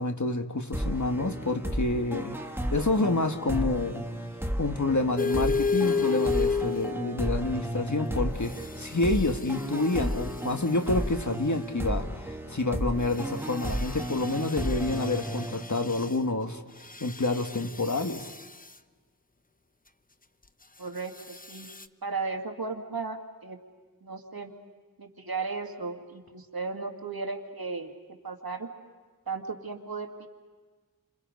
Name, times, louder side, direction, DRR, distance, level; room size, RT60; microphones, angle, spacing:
voice 1, 0.0-2.4 2.7-4.0 4.6-12.1 12.5-16.6 17.0-18.3, left 2 dB, 50° left, 6 dB, 1.6 m, -28 dB
sound 1, 0.7-16.2, equal, 5° right, 1.8 m, -33 dB
sound 2, 5.2-7.3 8.4-10.9 13.0-16.2 16.8-18.7 21.1-21.9, left 5 dB, 25° left, 0.8 m, -33 dB
voice 2, 20.8-21.7 22.0-23.6 24.0-24.5 25.0-27.9 28.2-28.7 29.3-30.3, right 4 dB, 75° right, 3 dB, 2.1 m, -35 dB
30.0 x 26.0 x 5.3 m, 1.4 s
wide cardioid pair, 45°, 37 cm